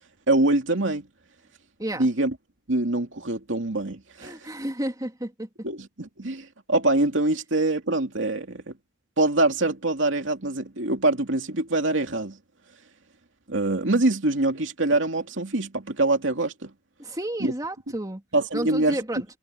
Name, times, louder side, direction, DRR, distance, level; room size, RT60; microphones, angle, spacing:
voice 1, 0.3-1.0 2.0-2.3 2.7-4.3 5.6-8.7 9.2-12.4 13.5-16.7 17.4-17.5 18.3-19.0, right 2 dB, 75° right, 2.7 m, -24 dB
voice 2, 4.2-5.5 17.0-18.2 18.5-19.2, right 1 dB, 20° right, 2.9 m, -31 dB
head